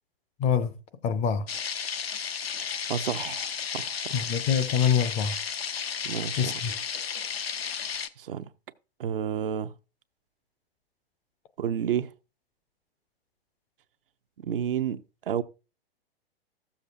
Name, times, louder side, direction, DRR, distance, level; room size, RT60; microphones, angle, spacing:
voice 1, 0.4-0.8 1.0-1.5 4.1-5.4 6.4-6.7, left 7 dB, 20° left, 0.5 m, -25 dB
sound 1, 1.5-8.1, left 7 dB, 75° left, 0.8 m, -33 dB
voice 2, 2.5-4.1 6.0-6.5 8.2-8.5 9.0-9.7 11.6-12.1 14.4-15.4, right 9 dB, 65° right, 0.6 m, -31 dB
14.5 x 7.1 x 2.5 m
figure-of-eight pair, 105°, 30 cm